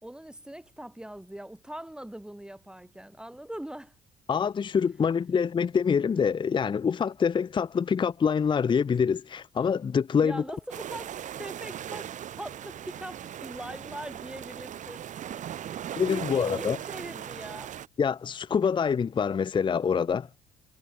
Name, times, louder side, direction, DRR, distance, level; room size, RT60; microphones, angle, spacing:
voice 1, 0.0-4.0 10.2-11.1 11.4-15.1 15.6-17.7, right 1 dB, 5° right, 5.5 m, -41 dB
voice 2, 4.3-10.4 16.0-16.8 18.0-20.3, left 6 dB, 30° left, 0.7 m, -25 dB
sound 1, 10.7-17.9, right 10 dB, 45° right, 0.8 m, -39 dB
cardioid pair, 110°, 17 cm